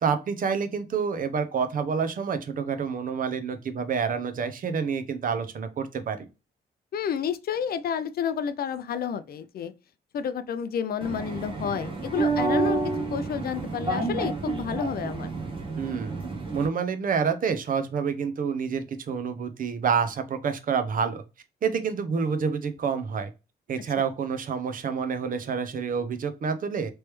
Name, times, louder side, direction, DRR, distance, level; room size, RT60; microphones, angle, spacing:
voice 1, 0.0-6.3 15.8-16.2 16.5-21.2 21.6-23.3 23.7-26.9, right 6 dB, 55° right, 0.6 m, -28 dB
voice 2, 6.9-9.7 10.1-15.3 24.0-24.1, left 7 dB, 65° left, 0.4 m, -30 dB
sound 1, 11.0-16.7, right 3 dB, 30° right, 0.9 m, -29 dB
3.3 x 3.1 x 3.0 m
wide cardioid pair, 150°, 17 cm